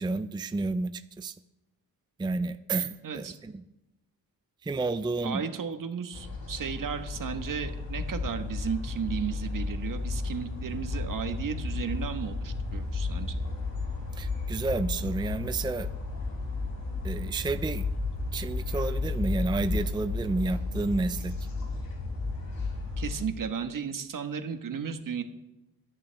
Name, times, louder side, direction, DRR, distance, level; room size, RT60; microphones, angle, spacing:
voice 1, 0.0-1.3 2.2-3.6 4.6-5.4 14.2-15.9 17.0-17.9 18.3-21.3, right 3 dB, 10° right, 11 dB, 0.5 m, -30 dB
voice 2, 2.7-3.4 5.2-13.4 23.0-25.2, right 7 dB, 60° right, 7 dB, 1.4 m, -34 dB
sound 1, 6.1-23.2, left 3 dB, 70° left, 4.6 m, -33 dB
23.0 x 10.5 x 3.5 m, 0.95 s
cardioid pair, 90°, 37 cm